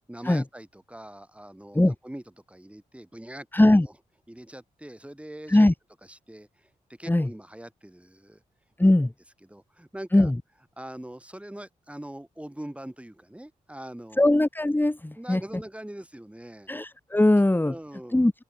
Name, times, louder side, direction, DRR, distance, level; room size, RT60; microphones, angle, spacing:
voice 1, 0.1-3.9 4.3-5.7 6.1-6.7 7.0-8.4 8.8-8.9 9.4-10.3 10.8-14.4 15.2-16.7 17.6-18.3, right 1 dB, 10° right, 4.8 m, -42 dB
voice 2, 3.5-3.9 5.5-5.7 7.1-7.3 8.8-9.1 10.1-10.4 14.2-15.4 16.7-17.7 18.1-18.3, left 1 dB, 15° left, 2.1 m, -20 dB
open air
cardioid pair, 60°, 15 cm